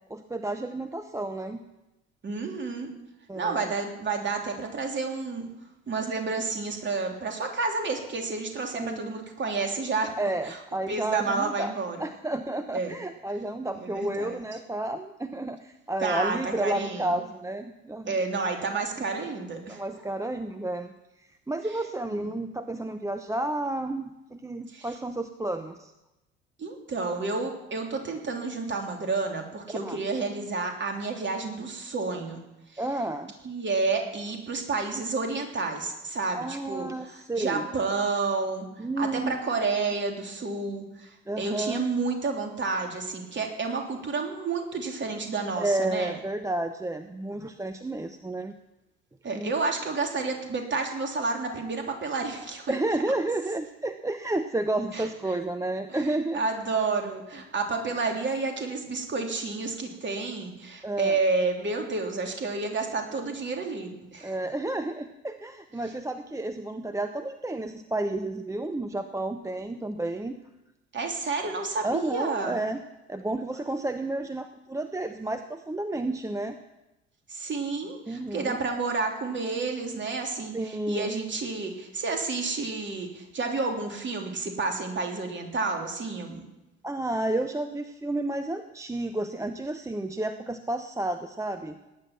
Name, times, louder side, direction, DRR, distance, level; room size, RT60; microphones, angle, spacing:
voice 1, 0.1-1.6 3.3-3.7 8.7-9.2 10.2-11.7 12.0-18.1 19.7-20.9 21.5-25.9 29.7-30.0 32.8-33.3 36.3-37.7 38.8-39.5 41.3-41.8 45.6-48.5 49.3-49.5 52.7-56.4 60.8-61.2 64.2-70.4 71.8-72.8 73.1-76.6 78.1-78.6 80.5-81.1 86.8-91.8, right 2 dB, 10° right, 9 dB, 0.9 m, -31 dB
voice 2, 2.2-2.9 3.4-5.5 5.9-10.1 10.4-10.6 10.9-12.0 12.7-12.9 13.7-14.3 16.0-17.1 18.0-19.8 22.1-22.3 24.7-24.9 26.6-32.4 32.7-32.8 33.4-46.2 49.2-52.8 54.9-55.1 55.9-56.1 56.3-64.3 70.9-72.6 77.3-86.4, right 4 dB, 35° right, 3 dB, 3.2 m, -30 dB
18.0 x 10.0 x 6.0 m, 0.96 s
figure-of-eight pair, 55°, 34 cm